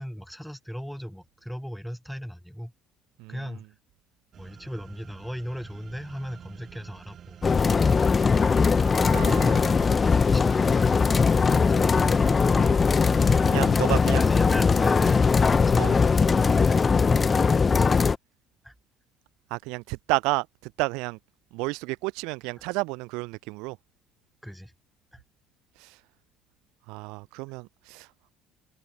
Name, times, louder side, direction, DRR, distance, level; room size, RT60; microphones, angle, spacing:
voice 1, 0.0-2.7 3.3-3.7 4.4-7.4 7.7-8.5 10.3-10.7 13.9-15.4 15.7-18.1 18.6-18.7 22.6-22.7 24.4-24.7 25.1-25.2, equal, ahead, 0.8 m, -37 dB
sound 1, 4.3-13.7, right 9 dB, 30° right, 2.1 m, -47 dB
sound 2, 7.4-18.2, left 5 dB, 15° left, 0.3 m, -20 dB
Aircraft, 7.6-14.0, left 18 dB, 60° left, 6.2 m, -49 dB
voice 2, 9.1-9.8 13.4-14.3 15.8-16.0 19.5-20.5 20.8-21.2 21.5-23.8 26.9-28.1, right 26 dB, 80° right, 0.9 m, -31 dB
cardioid pair, 180°, 0 cm